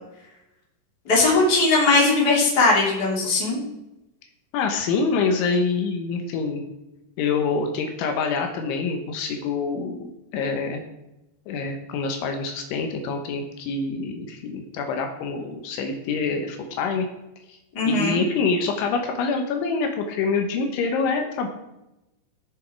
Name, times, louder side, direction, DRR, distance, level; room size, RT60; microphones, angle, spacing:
voice 1, 1.0-3.6 17.7-18.2, left 3 dB, 25° left, -4 dB, 3.0 m, -19 dB
voice 2, 4.5-6.6 7.2-10.8 11.5-17.1 17.5-17.6 17.9-21.5, left 4 dB, 75° left, 4 dB, 3.4 m, -26 dB
18.0 x 6.5 x 4.6 m, 0.93 s
omnidirectional pair, 5.6 m